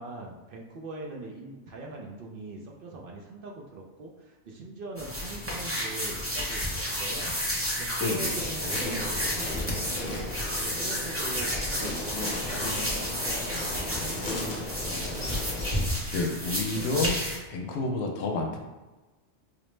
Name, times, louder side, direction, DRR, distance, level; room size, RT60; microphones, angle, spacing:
voice 1, 0.0-10.3 10.6-15.3, right 2 dB, 60° right, -1 dB, 0.6 m, -42 dB
sound 1, 5.0-17.4, equal, 15° right, 0.5 m, -31 dB
voice 2, 8.0-8.3 16.1-17.2 17.5-18.6, left 3 dB, 75° left, 1 dB, 0.8 m, -29 dB
Insect, 8.3-15.9, left 2 dB, 45° left, 0.7 m, -36 dB
4.7 x 2.0 x 3.2 m, 1.2 s
omnidirectional pair, 1.2 m